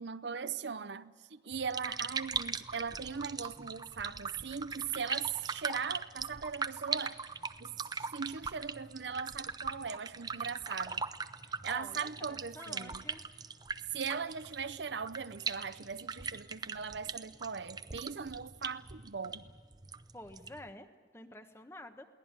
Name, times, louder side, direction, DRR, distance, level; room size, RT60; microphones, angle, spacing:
voice 1, 0.0-7.2 7.6-11.0 11.6-13.0 13.9-19.5, right 6 dB, 80° right, 0.7 m, -39 dB
sound 1, 1.5-20.7, right 5 dB, 20° right, 0.6 m, -40 dB
voice 2, 11.7-13.2 20.1-20.9 21.1-22.1, left 1 dB, 15° left, 1.3 m, -49 dB
22.5 x 18.0 x 9.1 m
head